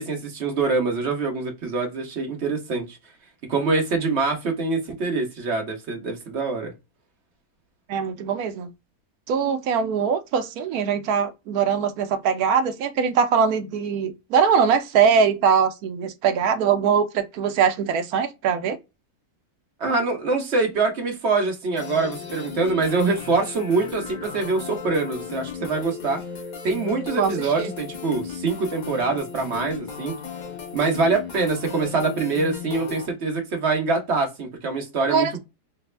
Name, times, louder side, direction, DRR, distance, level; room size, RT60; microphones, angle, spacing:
voice 1, 0.0-3.0 3.5-6.7 19.8-26.2 26.6-30.2 30.7-35.4, right 3 dB, 50° right, 1.1 m, -24 dB
voice 2, 7.9-8.7 9.3-18.8 27.2-27.7 35.1-35.4, right 6 dB, 75° right, 1.0 m, -22 dB
sound 1, 21.8-33.1, left 7 dB, 60° left, 0.4 m, -36 dB
3.2 x 2.0 x 3.1 m
omnidirectional pair, 1.7 m